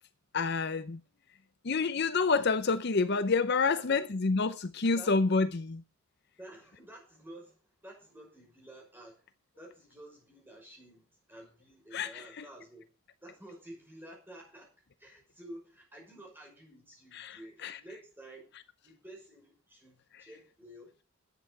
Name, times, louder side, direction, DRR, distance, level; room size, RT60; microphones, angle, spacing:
voice 1, 0.3-1.0 1.6-5.8 11.9-12.4 17.1-17.8, left 4 dB, 50° left, 0.6 m, -28 dB
voice 2, 3.7-4.1 4.9-5.2 6.4-9.3 9.6-12.9 13.2-18.5 18.8-20.9, right 1 dB, 10° right, 5.8 m, -51 dB
11.5 x 8.7 x 6.7 m
head